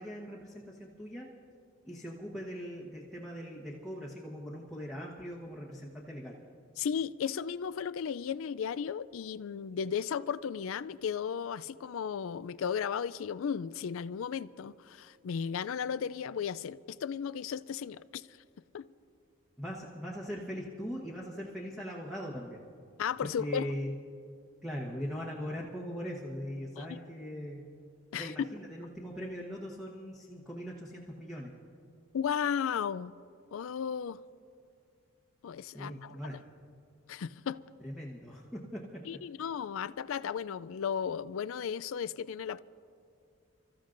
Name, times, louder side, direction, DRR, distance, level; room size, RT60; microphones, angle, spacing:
voice 1, 0.0-1.3 1.8-6.4 19.6-22.6 23.2-23.9 24.6-27.7 28.1-31.5 35.7-36.5 37.8-39.0, equal, ahead, 1.1 m, -40 dB
voice 2, 6.8-18.2 18.7-18.8 23.0-23.7 26.8-27.0 28.1-28.3 32.1-33.1 33.5-34.2 35.4-36.2 37.1-37.6 39.1-42.6, left 7 dB, 70° left, 0.3 m, -35 dB
30.0 x 14.0 x 2.6 m
head